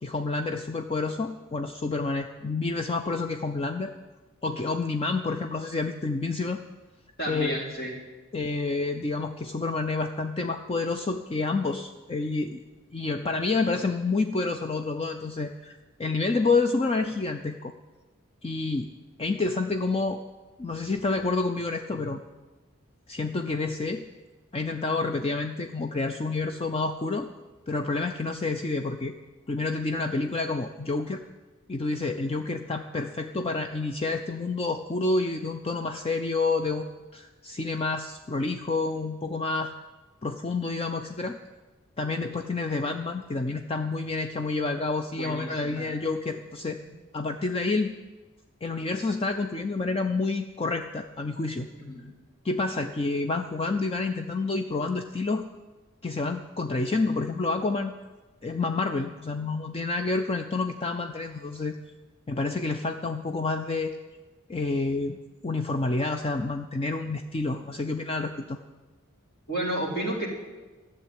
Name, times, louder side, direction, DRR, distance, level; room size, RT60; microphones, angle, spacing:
voice 1, 0.0-3.9 4.4-6.6 7.3-7.6 8.3-12.6 12.9-17.7 18.4-18.9 19.2-20.2 20.6-22.2 23.1-24.0 24.5-27.3 27.7-29.1 29.5-31.2 31.7-39.7 40.2-41.4 42.0-46.8 47.1-47.9 48.6-51.7 52.4-55.5 56.0-57.9 58.4-61.8 62.3-64.0 64.5-65.2 65.4-68.6, left 3 dB, 25° left, 6 dB, 0.4 m, -29 dB
voice 2, 7.2-7.9 45.2-45.9 51.8-52.1 69.5-70.3, right 1 dB, 50° left, -1 dB, 3.5 m, -31 dB
13.5 x 7.3 x 10.0 m, 1.2 s
head